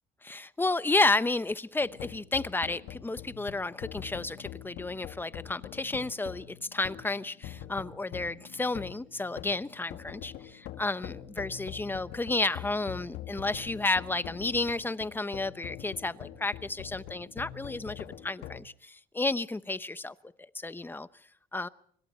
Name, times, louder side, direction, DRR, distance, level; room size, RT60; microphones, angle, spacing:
voice 1, 0.2-20.1 20.5-21.1 21.5-21.7, left 2 dB, 10° left, 0.9 m, -31 dB
sound 1, 1.8-18.6, left 11 dB, 85° left, 1.7 m, -44 dB
26.5 x 24.0 x 4.4 m
cardioid pair, 110°, 17 cm